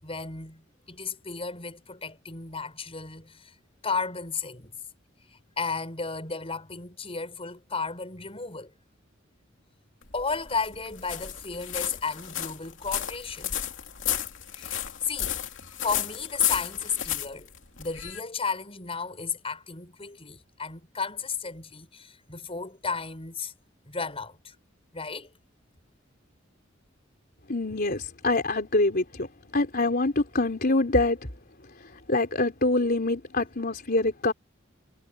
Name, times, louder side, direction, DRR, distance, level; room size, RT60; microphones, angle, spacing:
voice 1, 0.0-3.5 3.8-4.8 5.6-8.7 10.1-13.6 14.5-15.4 15.8-17.5 17.8-23.5 23.9-24.5 24.9-25.3, left 5 dB, 30° left, 6.3 m, -33 dB
sound 1, 10.0-18.2, left 11 dB, 70° left, 2.9 m, -33 dB
voice 2, 27.5-29.3 29.5-31.2 32.1-34.3, left 2 dB, 50° left, 3.8 m, -25 dB
head